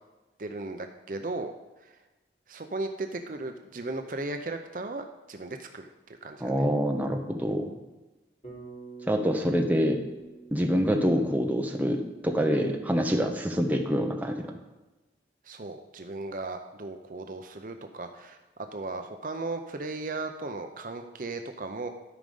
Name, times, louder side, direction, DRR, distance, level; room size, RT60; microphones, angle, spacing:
voice 1, 0.4-1.5 1.8-2.0 2.5-6.6 15.4-18.4 18.7-21.9, right 2 dB, 50° right, 6 dB, 0.6 m, -36 dB
voice 2, 6.4-7.7 9.1-10.0 10.5-14.4, equal, 10° right, 2 dB, 0.9 m, -26 dB
Bass guitar, 8.4-12.8, right 4 dB, 35° left, 3.7 m, -48 dB
12.5 x 5.1 x 5.3 m, 1.1 s
head